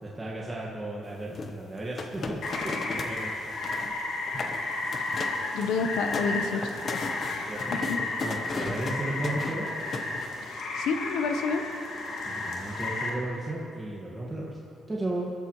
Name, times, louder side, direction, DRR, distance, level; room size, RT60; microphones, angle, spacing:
voice 1, 0.0-2.7 3.0-3.3 7.5-7.8 8.2-9.7 12.2-14.6 14.9-15.3, right 2 dB, 20° right, -5 dB, 1.9 m, -34 dB
sound 1, 1.3-3.2 3.5-3.9 4.3-4.6 4.9-5.5 5.8-10.5, left 3 dB, 45° left, 1.1 m, -36 dB
Rain, 2.4-13.1, left 2 dB, 70° left, 2.4 m, -33 dB
voice 2, 5.5-8.0 10.4-11.6, left 4 dB, 85° left, 7 dB, 1.0 m, -30 dB
22.5 x 13.0 x 3.2 m, 2.7 s
cardioid pair, 90°, 0 cm